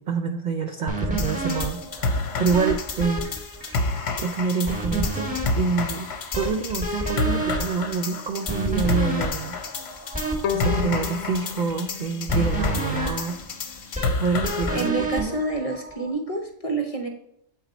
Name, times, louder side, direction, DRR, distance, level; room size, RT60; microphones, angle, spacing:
voice 1, 0.0-3.3 4.2-6.1 6.4-9.6 10.5-13.4 13.7-13.8 14.2-15.4, right 5 dB, 75° right, 6 dB, 0.4 m, -27 dB
sound 1, 0.9-16.1, right 1 dB, 5° right, 1.1 m, -31 dB
sound 2, 1.2-14.9, left 3 dB, 55° left, 0.9 m, -30 dB
Bowed string instrument, 10.4-13.5, left 8 dB, 90° left, 1.0 m, -33 dB
voice 2, 14.7-17.1, right 3 dB, 35° left, 4 dB, 0.7 m, -28 dB
7.7 x 4.4 x 4.0 m, 0.75 s
omnidirectional pair, 1.4 m